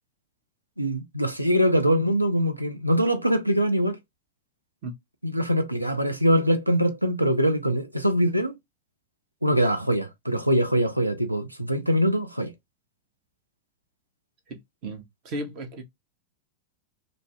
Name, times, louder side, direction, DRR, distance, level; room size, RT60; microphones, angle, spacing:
voice 1, 0.8-4.0 5.2-8.6 9.4-12.5, equal, 85° right, 0.4 m, -23 dB
voice 2, 14.5-15.8, right 1 dB, 45° right, 0.8 m, -35 dB
2.5 x 2.0 x 3.2 m
figure-of-eight pair, 90°, 0 cm